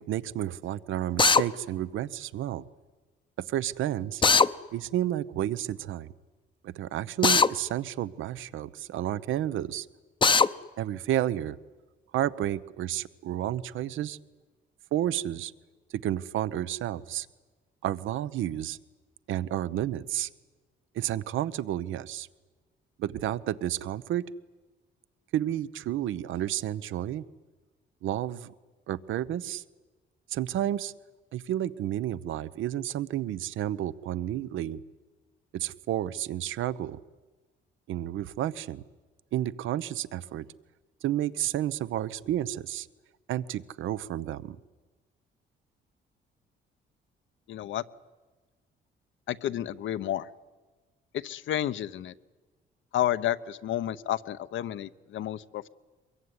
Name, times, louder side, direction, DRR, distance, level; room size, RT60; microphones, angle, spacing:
voice 1, 0.0-2.6 3.5-4.2 4.7-6.1 6.6-9.9 10.8-11.6 12.1-14.2 14.9-15.5 15.9-17.3 17.8-18.8 19.3-20.3 20.9-22.3 23.0-24.2 25.3-27.2 28.0-28.5 28.9-29.6 30.3-30.9 31.3-34.8 35.5-37.0 37.9-38.8 39.3-40.5 41.0-42.9 43.3-44.6, right 12 dB, 80° right, 16 dB, 0.9 m, -31 dB
Drill, 1.2-1.4 4.2-4.5 7.2-7.5 10.2-10.5, left 4 dB, 25° left, 0.7 m, -19 dB
voice 2, 47.5-47.8 49.3-50.3 51.1-52.1 52.9-55.7, left 12 dB, 75° left, 14 dB, 0.9 m, -31 dB
23.5 x 22.0 x 9.7 m, 1.3 s
cardioid pair, 90°, 20 cm